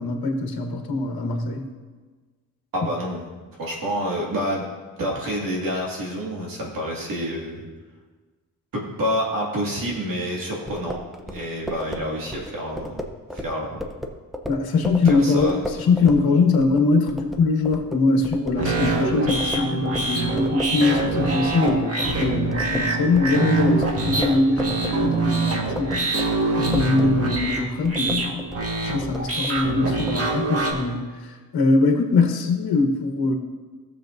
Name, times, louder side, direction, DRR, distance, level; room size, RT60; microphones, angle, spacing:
voice 1, 0.0-1.7 14.5-15.5 15.8-28.5 28.9-33.3, left 3 dB, 75° left, 3 dB, 1.3 m, -22 dB
voice 2, 2.7-3.3 3.6-4.7 5.0-7.6 8.7-11.0 11.3-13.0 13.3-13.8 15.0-15.6, equal, 65° right, -3 dB, 2.2 m, -28 dB
sound 1, 10.7-21.2 21.4-30.2, left 1 dB, ahead, 0.6 m, -34 dB
sound 2, 18.6-30.7, right 3 dB, 40° right, 1.6 m, -25 dB
16.5 x 6.9 x 2.6 m, 1.3 s
cardioid pair, 130°, 37 cm